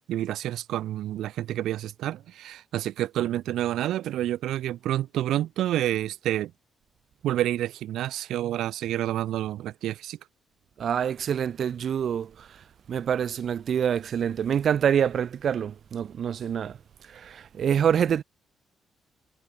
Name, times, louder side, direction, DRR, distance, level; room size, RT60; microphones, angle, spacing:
voice 1, 0.0-6.5 7.2-10.2, right 13 dB, 80° right, 6.5 m, -29 dB
voice 2, 10.8-12.3 12.9-16.8 17.1-18.2, right 8 dB, 60° right, 4.3 m, -26 dB
cardioid pair, 90°, 0 cm